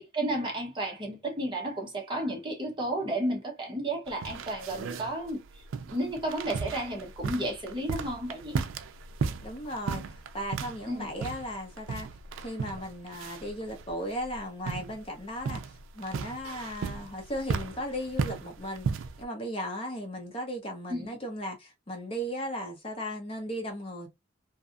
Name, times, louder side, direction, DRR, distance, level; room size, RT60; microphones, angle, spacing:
voice 1, 0.0-8.6 10.9-11.1 20.9-21.1, right 1 dB, 25° right, 0.8 m, -32 dB
sound 1, 4.1-19.2, right 5 dB, 80° right, 0.4 m, -36 dB
voice 2, 9.4-10.0 10.3-12.1 12.4-15.6 15.9-24.1, equal, 30° left, 0.7 m, -36 dB
2.6 x 2.5 x 2.4 m
head